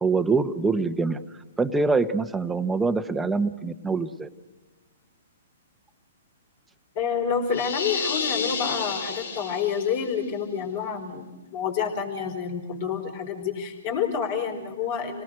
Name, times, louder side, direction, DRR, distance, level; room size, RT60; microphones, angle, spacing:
voice 1, 0.0-1.2 1.6-4.3, right 4 dB, 10° right, 8 dB, 1.1 m, -24 dB
voice 2, 6.9-15.2, left 7 dB, 45° left, 5 dB, 4.7 m, -28 dB
sound 1, 7.5-10.1, left 5 dB, 75° left, 2.3 m, -30 dB
28.5 x 18.5 x 6.4 m, 1.2 s
hypercardioid pair, 130°, 0 cm